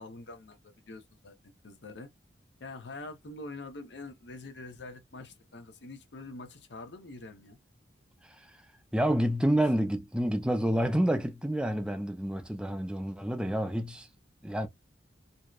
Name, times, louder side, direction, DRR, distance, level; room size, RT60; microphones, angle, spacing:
voice 1, 0.0-2.1 2.6-7.6, left 2 dB, 70° left, 0.7 m, -45 dB
voice 2, 8.9-14.1 14.4-14.7, right 1 dB, 5° right, 0.4 m, -28 dB
2.7 x 2.1 x 2.3 m
head